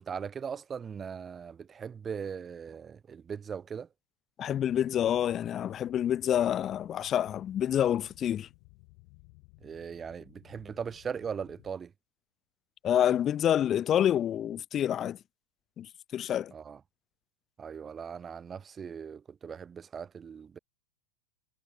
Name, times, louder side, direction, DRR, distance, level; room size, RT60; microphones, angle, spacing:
voice 1, 0.0-3.9 9.6-11.9 16.5-16.8 17.6-20.6, right 7 dB, 20° right, 6.4 m, -39 dB
voice 2, 4.4-8.5 12.8-15.2 15.8-16.5, left 10 dB, 30° left, 0.5 m, -28 dB
sound 1, 4.5-11.7, left 40 dB or more, 50° left, 7.6 m, -57 dB
figure-of-eight pair, 90°, 0 cm